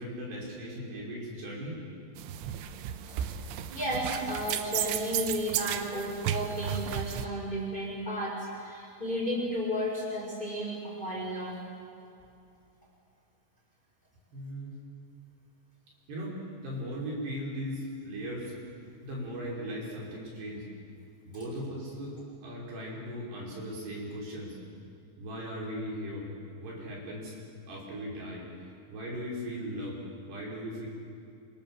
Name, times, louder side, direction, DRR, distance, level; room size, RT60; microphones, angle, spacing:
voice 1, 0.0-1.8 14.3-14.7 16.1-18.5 19.0-20.7 21.3-24.6 25.2-26.3 26.6-27.3 27.7-28.4 28.9-30.9, equal, 55° right, -3 dB, 7.1 m, -38 dB
sound 1, 2.2-7.3, right 10 dB, 75° right, 3.4 m, -34 dB
voice 2, 3.7-8.3 8.6-11.6, equal, 10° left, -3 dB, 6.2 m, -33 dB
28.0 x 26.0 x 7.5 m, 2.6 s
omnidirectional pair, 5.7 m